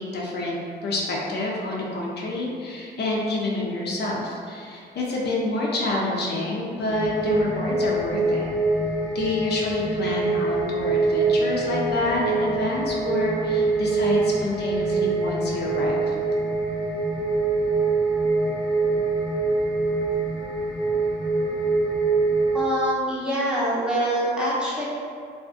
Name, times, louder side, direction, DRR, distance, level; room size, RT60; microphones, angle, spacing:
voice 1, 0.0-8.5 9.1-16.1, left 2 dB, 55° left, -3 dB, 0.5 m, -28 dB
sound 1, 6.9-22.6, right 3 dB, 45° right, 0.8 m, -24 dB
voice 2, 22.5-24.9, right 1 dB, 5° right, -8 dB, 0.7 m, -24 dB
2.4 x 2.4 x 2.4 m, 2.3 s
cardioid pair, 90°, 20 cm